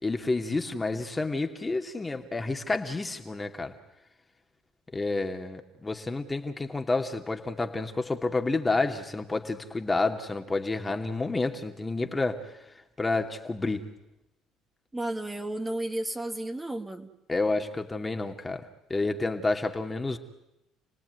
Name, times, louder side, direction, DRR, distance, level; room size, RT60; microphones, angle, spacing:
voice 1, 0.0-3.7 4.9-12.7 13.0-13.9 17.3-20.2, left 3 dB, 20° left, 5 dB, 2.6 m, -29 dB
voice 2, 14.9-17.1, right 1 dB, 15° right, 5 dB, 2.3 m, -33 dB
29.5 x 18.5 x 9.6 m, 0.90 s
supercardioid pair, 75°, 0 cm